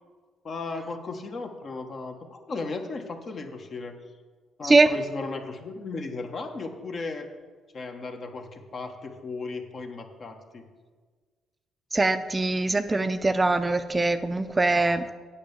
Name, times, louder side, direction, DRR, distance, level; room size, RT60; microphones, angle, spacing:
voice 1, 0.4-4.0 4.6-7.3 7.7-10.7 14.7-14.9, left 3 dB, 45° left, 5 dB, 1.2 m, -36 dB
voice 2, 11.9-15.1, right 2 dB, 20° right, 10 dB, 0.5 m, -22 dB
8.6 x 5.5 x 7.1 m, 1.5 s
cardioid pair, 80°, 0 cm